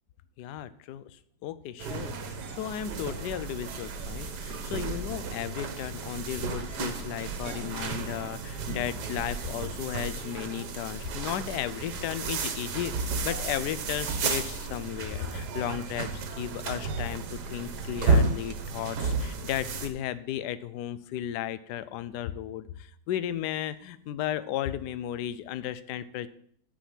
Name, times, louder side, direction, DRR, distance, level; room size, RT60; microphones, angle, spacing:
voice 1, 0.4-26.3, left 11 dB, 70° left, 15 dB, 1.1 m, -35 dB
sound 1, 1.8-19.9, right 4 dB, 60° right, 1.5 m, -32 dB
8.6 x 5.1 x 7.5 m, 0.63 s
omnidirectional pair, 2.1 m